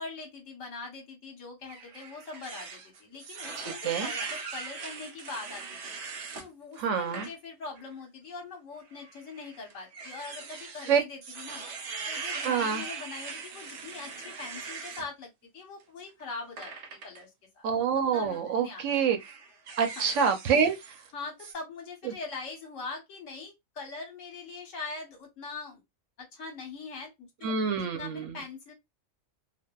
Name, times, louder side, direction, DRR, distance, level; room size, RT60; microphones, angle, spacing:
voice 1, 0.0-5.9 6.3-11.6 12.1-16.7 17.0-17.3 17.5-17.6 18.1-18.8 20.0-20.1 21.1-25.8 26.2-28.7, left 4 dB, 75° left, 1.3 m, -42 dB
sound 1, 1.7-6.5 7.0-7.3 7.8-7.9 8.9-15.1 16.6-17.2 18.2-18.4 18.9-21.1 21.4-21.5, right 5 dB, 60° right, 0.6 m, -40 dB
voice 2, 6.8-7.3 10.9-11.0 12.4-12.8 17.6-19.2 19.8-20.8 22.1-22.2 27.4-28.3, right 6 dB, 75° right, 0.9 m, -26 dB
2.6 x 2.4 x 2.2 m
omnidirectional pair, 1.3 m